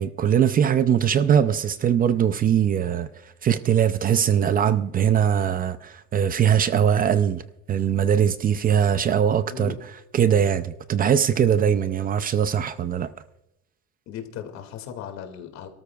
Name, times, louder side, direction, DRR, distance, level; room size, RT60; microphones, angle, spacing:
voice 1, 0.0-7.4 7.7-9.8 10.1-13.1, right 8 dB, 30° right, 0.5 m, -21 dB
voice 2, 9.5-9.8 14.1-15.7, left 8 dB, 60° left, 2.3 m, -37 dB
27.0 x 13.5 x 2.4 m
cardioid pair, 150°, 32 cm